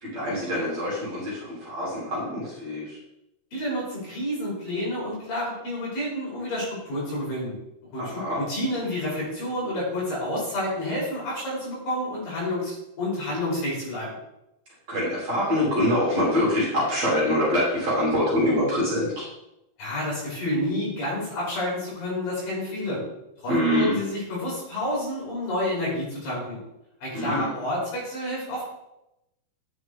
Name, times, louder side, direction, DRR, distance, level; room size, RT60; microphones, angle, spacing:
voice 1, 0.0-3.0 8.0-8.4 14.9-19.3 23.5-24.0 27.1-27.5, left 1 dB, 45° right, -6 dB, 3.7 m, -25 dB
voice 2, 3.5-7.5 7.9-14.2 19.8-23.0 23.4-26.6 27.0-28.6, left 1 dB, 60° left, -5 dB, 5.1 m, -29 dB
9.4 x 5.7 x 3.7 m, 0.88 s
omnidirectional pair, 4.6 m